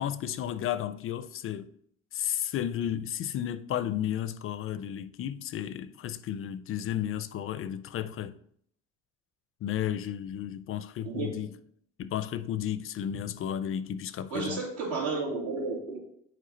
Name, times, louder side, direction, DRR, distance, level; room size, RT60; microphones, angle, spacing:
voice 1, 0.0-1.7 2.1-8.4 9.6-11.5 12.0-14.6, left 10 dB, 45° left, 0.4 m, -33 dB
voice 2, 11.0-11.3 14.3-16.0, right 4 dB, 75° right, 2.6 m, -32 dB
7.6 x 4.5 x 3.9 m
cardioid pair, 110°, 30 cm